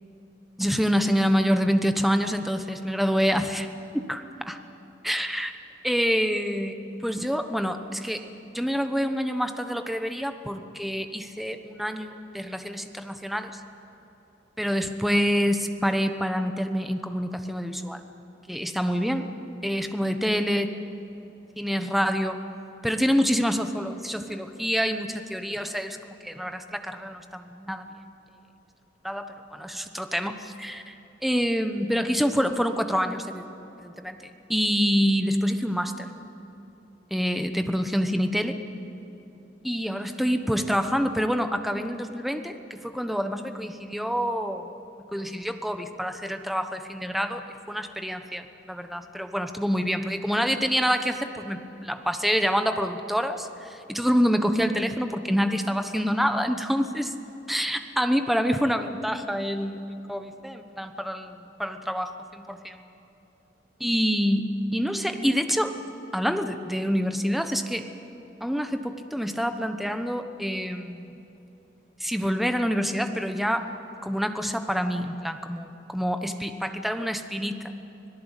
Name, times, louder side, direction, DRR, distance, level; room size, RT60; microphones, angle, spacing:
voice 1, 0.6-3.7 3.9-4.6 5.0-5.5 5.8-13.6 14.6-18.0 18.5-19.3 19.6-21.3 21.5-22.4 22.8-27.8 29.0-30.9 31.2-33.4 33.8-36.1 37.1-38.6 39.6-44.8 45.1-57.1 57.5-62.8 63.8-65.7 66.1-67.9 68.4-71.1 72.0-73.7 74.0-77.6, equal, ahead, 7 dB, 1.0 m, -27 dB
25.5 x 18.0 x 8.2 m, 3.0 s
head